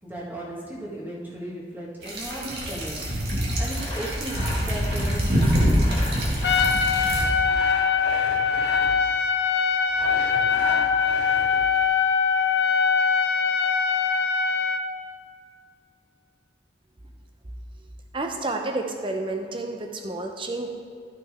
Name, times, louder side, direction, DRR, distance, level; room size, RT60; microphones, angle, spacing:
voice 1, 0.0-3.0 3.6-6.0, right 1 dB, 10° right, -5 dB, 1.8 m, -36 dB
sound 1, 2.0-7.2, equal, 65° right, 1.8 m, -25 dB
Sawing, 3.7-9.1 9.8-11.9, left 1 dB, 35° left, 1.8 m, -36 dB
Trumpet, 6.4-14.9, left 5 dB, 70° left, 0.5 m, -22 dB
voice 2, 18.1-20.7, right 2 dB, 30° right, 3 dB, 0.8 m, -30 dB
12.0 x 5.7 x 3.6 m, 2.2 s
head